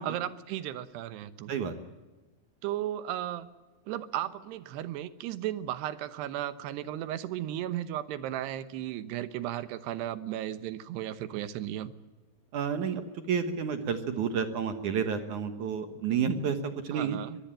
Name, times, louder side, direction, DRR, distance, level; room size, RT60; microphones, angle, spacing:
voice 1, 0.0-1.5 2.6-3.5 3.9-11.9 16.9-17.4, right 12 dB, 90° right, 13 dB, 3.2 m, -35 dB
voice 2, 12.5-17.2, right 7 dB, 60° right, 8 dB, 2.3 m, -30 dB
24.0 x 19.0 x 8.8 m, 1.2 s
omnidirectional pair, 4.7 m